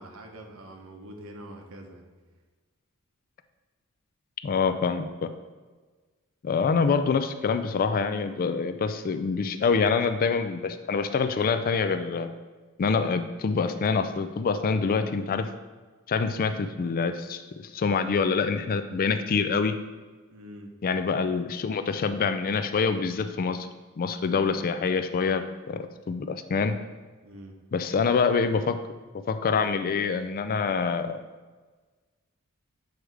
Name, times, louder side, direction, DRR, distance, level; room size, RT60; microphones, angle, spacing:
voice 1, 0.0-2.0 20.3-20.7 27.2-27.6, right 1 dB, 65° right, 3 dB, 1.0 m, -44 dB
voice 2, 4.4-5.3 6.4-12.3 12.8-15.5 16.1-19.8 20.8-23.7 24.0-26.8 27.7-28.8 29.3-31.2, left 5 dB, 40° left, 10 dB, 0.3 m, -26 dB
7.9 x 3.4 x 4.7 m, 1.4 s
head